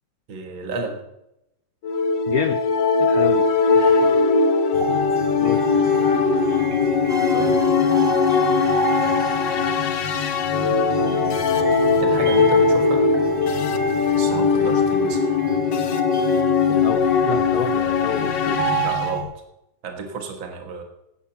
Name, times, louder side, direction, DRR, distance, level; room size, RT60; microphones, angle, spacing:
voice 1, 0.3-1.0 3.7-4.2 7.3-7.6 11.0-13.1 14.1-15.3 18.8-19.3 19.8-20.8, right 4 dB, 70° right, 4 dB, 2.4 m, -33 dB
sound 1, 1.8-19.1, left 4 dB, 65° left, 1.6 m, -20 dB
voice 2, 2.3-2.6 3.0-3.5 5.4-5.6 16.7-18.6, left 9 dB, 85° left, 11 dB, 0.8 m, -28 dB
sound 2, 4.7-19.2, right 2 dB, 55° right, 3.5 m, -30 dB
sound 3, 7.1-11.2, right 1 dB, 5° right, 0.8 m, -38 dB
11.5 x 9.6 x 6.9 m, 0.85 s
omnidirectional pair, 2.2 m